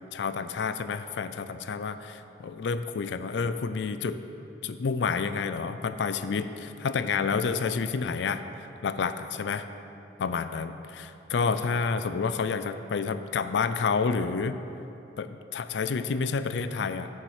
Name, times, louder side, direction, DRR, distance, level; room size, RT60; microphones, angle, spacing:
voice 1, 0.1-4.2 4.6-8.4 8.8-9.6 10.2-14.6 15.2-17.1, left 5 dB, 70° left, 11 dB, 0.4 m, -29 dB
9.3 x 6.9 x 4.9 m, 2.8 s
head